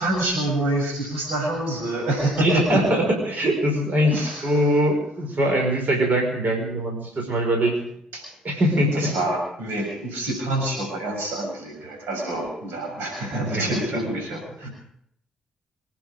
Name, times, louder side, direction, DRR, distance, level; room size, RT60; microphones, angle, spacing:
voice 1, 0.0-2.8 4.1-4.4 8.1-8.3 8.9-14.7, right 1 dB, 75° right, 1 dB, 7.1 m, -26 dB
voice 2, 2.4-4.1 4.4-7.7 8.4-9.1 13.3-14.0, equal, 50° right, 1 dB, 5.5 m, -22 dB
26.0 x 10.5 x 5.2 m, 0.74 s
hypercardioid pair, 40°, 4 cm